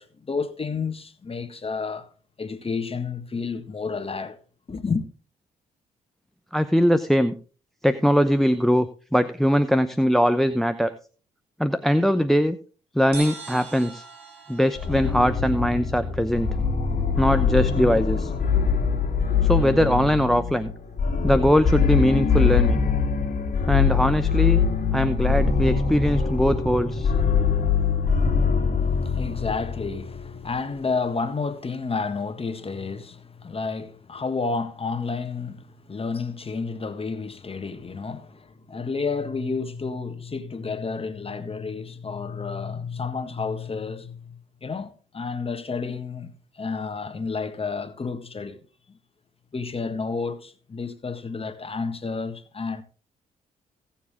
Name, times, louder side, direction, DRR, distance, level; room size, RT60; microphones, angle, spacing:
voice 1, 0.0-2.1 2.4-4.4 4.7-5.0 28.8-48.6 48.9-49.0 49.5-52.8, left 4 dB, 35° left, 1.5 m, -31 dB
voice 2, 6.5-7.3 7.8-8.9 9.1-10.9 11.6-12.6 12.9-14.0 14.5-16.5 17.2-18.3 19.4-20.7 21.2-22.8 23.7-24.6 24.9-27.1, equal, ahead, 0.7 m, -21 dB
sound 1, 13.1-16.6, right 4 dB, 80° right, 3.8 m, -42 dB
sound 2, 14.8-30.4, left 6 dB, 50° left, 2.1 m, -23 dB
16.5 x 7.3 x 3.6 m
supercardioid pair, 55°, 17 cm